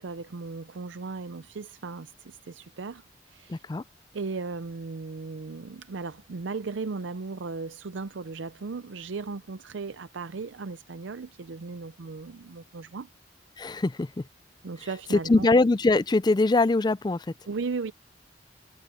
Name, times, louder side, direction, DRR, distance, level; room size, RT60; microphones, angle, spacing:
voice 1, 0.0-3.6 4.1-13.1 14.6-15.6 17.5-17.9, right 4 dB, 80° right, 0.6 m, -36 dB
voice 2, 3.5-3.8 13.6-14.1 15.3-17.3, left 2 dB, 20° left, 0.4 m, -22 dB
head